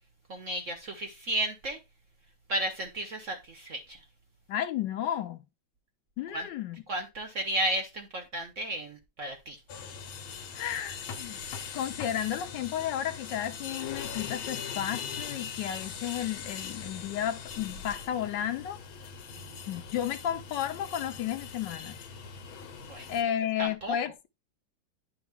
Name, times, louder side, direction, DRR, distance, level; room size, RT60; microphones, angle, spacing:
voice 1, 0.3-1.8 2.5-4.0 6.3-6.5 6.9-9.6 19.3-19.8 22.8-23.1 23.6-24.0, right 1 dB, 55° right, 0.9 m, -33 dB
voice 2, 4.5-5.4 6.2-6.8 10.5-11.4 11.7-18.8 19.7-22.0 23.1-24.3, left 10 dB, 70° left, 1.2 m, -33 dB
sound 1, 9.7-23.2, left 6 dB, 90° left, 1.8 m, -41 dB
10.5 x 3.6 x 3.4 m
omnidirectional pair, 2.2 m